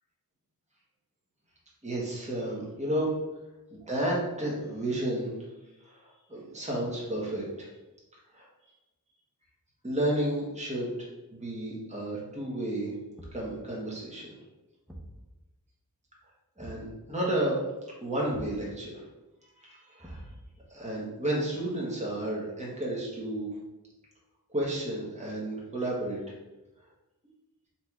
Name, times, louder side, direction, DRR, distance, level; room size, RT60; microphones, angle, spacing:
voice 1, 1.8-3.1 3.7-5.3 5.8-7.7 8.3-8.5 9.8-10.9 11.3-12.9 13.3-14.3 16.6-17.6 18.0-19.0 19.6-20.3 20.7-23.5 24.5-26.2, right 1 dB, 20° right, -4 dB, 1.2 m, -32 dB
Thump thud, 13.2-13.6 14.9-15.2 16.6-16.9 18.3-18.7 20.0-20.6, right 1 dB, 5° right, 0.7 m, -45 dB
4.2 x 2.5 x 4.6 m, 1.0 s
wide cardioid pair, 50°, 38 cm